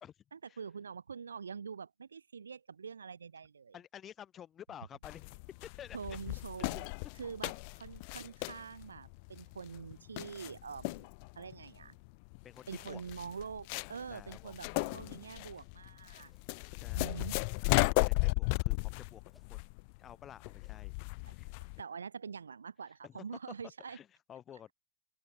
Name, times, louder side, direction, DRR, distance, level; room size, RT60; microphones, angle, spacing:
voice 1, 0.3-3.8 5.9-6.9 7.1-11.1 11.4-12.0 12.7-16.3 16.9-17.4 21.3-21.4 21.8-24.0, right 6 dB, 85° right, 0.8 m, -45 dB
voice 2, 3.7-5.2 5.8-6.0 6.7-6.8 12.4-13.0 14.1-14.5 16.8-17.3 17.8-19.6 20.0-20.9 21.3-21.5 23.0-23.2 23.9-24.7, left 9 dB, 30° left, 1.8 m, -51 dB
sound 1, 5.0-21.8, left 34 dB, 50° left, 0.3 m, -35 dB
sound 2, 14.2-14.5 14.9-17.7 18.0-19.0 19.2-21.1, left 3 dB, 10° left, 5.5 m, -74 dB
open air
hypercardioid pair, 100°, 0 cm